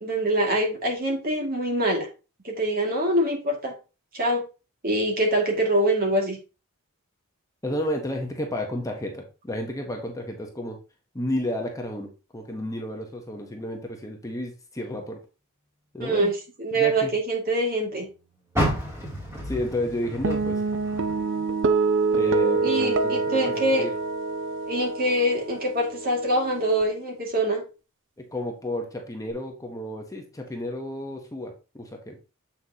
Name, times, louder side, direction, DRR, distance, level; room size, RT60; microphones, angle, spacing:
voice 1, 0.0-2.1 2.4-3.7 4.1-4.4 4.8-6.4 16.0-16.3 16.6-18.1 22.6-23.8 24.7-27.6, right 1 dB, 45° right, 0 dB, 2.1 m, -24 dB
voice 2, 7.6-10.8 11.1-15.2 15.9-16.3 16.7-17.1 19.4-20.6 22.1-23.9 28.2-32.2, left 1 dB, 15° left, 2 dB, 0.9 m, -32 dB
Car, 18.5-21.8 22.2-23.6 24.0-24.1 24.7-24.8, equal, 10° right, 2.7 m, -31 dB
sound 1, 20.2-26.8, right 4 dB, 60° right, 0.6 m, -26 dB
7.8 x 5.8 x 2.8 m, 0.32 s
head